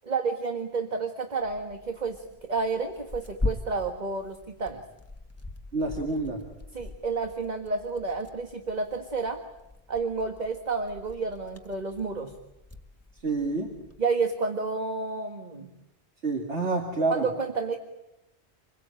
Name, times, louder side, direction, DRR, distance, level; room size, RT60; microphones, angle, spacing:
voice 1, 0.0-4.8 6.7-9.4 9.9-12.3 14.0-15.7 17.1-17.8, right 4 dB, 40° right, 5 dB, 1.8 m, -30 dB
Tearing, 1.4-14.0, left 2 dB, 15° left, 1.5 m, -41 dB
voice 2, 5.7-6.4 13.2-13.7 16.2-17.3, right 3 dB, 80° right, 2 dB, 2.6 m, -28 dB
27.5 x 22.0 x 8.9 m, 0.92 s
omnidirectional pair, 1.1 m